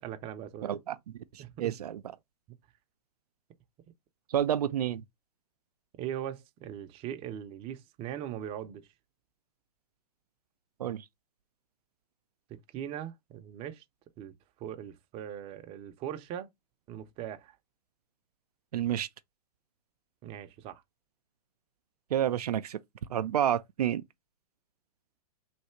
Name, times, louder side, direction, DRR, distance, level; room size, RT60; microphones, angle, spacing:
voice 1, 0.0-0.8 1.4-1.7 6.0-8.9 12.5-13.8 14.2-14.3 14.6-16.5 16.9-17.5 20.2-20.8, right 10 dB, 30° right, 0.6 m, -40 dB
voice 2, 0.6-2.0 4.3-5.0 10.8-11.0 18.7-19.1 22.1-22.8 23.1-24.0, right 10 dB, 80° right, 0.5 m, -30 dB
3.3 x 2.7 x 4.4 m
hypercardioid pair, 130°, 20 cm